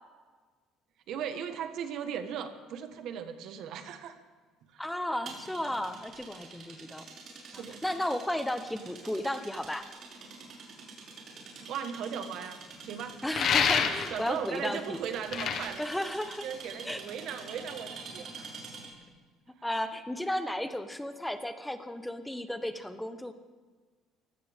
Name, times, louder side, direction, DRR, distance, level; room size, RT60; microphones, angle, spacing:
voice 1, 1.1-4.1 4.7-4.8 7.4-7.8 11.6-13.5 13.9-15.8 16.4-18.6, right 8 dB, 65° right, 8 dB, 1.5 m, -38 dB
voice 2, 4.8-7.0 7.5-9.8 13.2-15.0 15.8-16.5 16.8-17.0 19.6-23.3, left 1 dB, 5° left, 9 dB, 1.0 m, -34 dB
sound 1, 5.3-19.0, right 4 dB, 45° right, 5.7 m, -47 dB
sound 2, 13.3-14.3 15.1-16.8, left 7 dB, 55° left, 1.7 m, -28 dB
23.5 x 16.0 x 3.7 m, 1.4 s
cardioid pair, 110°, 0 cm